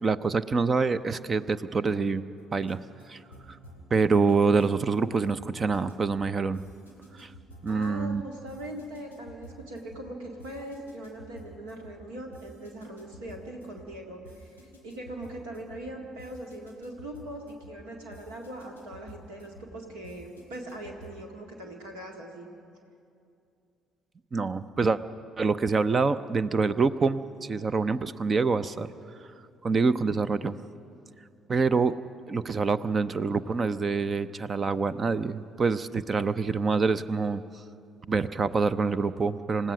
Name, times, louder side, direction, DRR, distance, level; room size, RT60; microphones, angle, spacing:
voice 1, 0.0-2.2 2.5-2.8 3.1-3.2 3.5-3.6 3.9-6.6 7.1-7.3 7.6-8.2 24.3-25.0 25.4-29.2 29.6-30.6 31.5-32.0 32.3-37.4 38.1-39.7, right 4 dB, 30° right, 15 dB, 0.6 m, -26 dB
sound 1, 2.4-21.3, right 1 dB, 90° right, 2.9 m, -51 dB
voice 2, 7.7-22.5, right 1 dB, 70° right, 1 dB, 1.9 m, -41 dB
28.0 x 15.5 x 6.1 m, 2.5 s
figure-of-eight pair, 50°, 0 cm